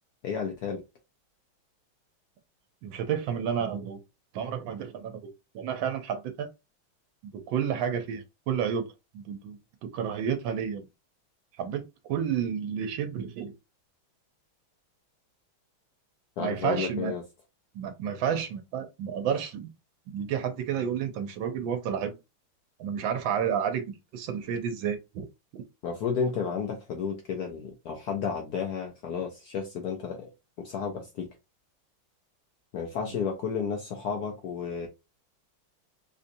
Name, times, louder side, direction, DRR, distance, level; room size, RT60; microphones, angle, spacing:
voice 1, 0.2-0.8 16.4-17.2 25.8-30.3 30.6-31.3 32.7-34.9, left 6 dB, 70° left, 1.0 m, -32 dB
voice 2, 2.8-4.0 4.3-5.2 5.5-6.5 7.2-8.9 9.1-10.9 11.6-13.5 16.4-17.1 17.7-19.7 20.1-22.1 22.8-25.2 25.5-25.6, right 8 dB, 75° right, 1.4 m, -31 dB
3.7 x 2.6 x 2.6 m
omnidirectional pair, 2.2 m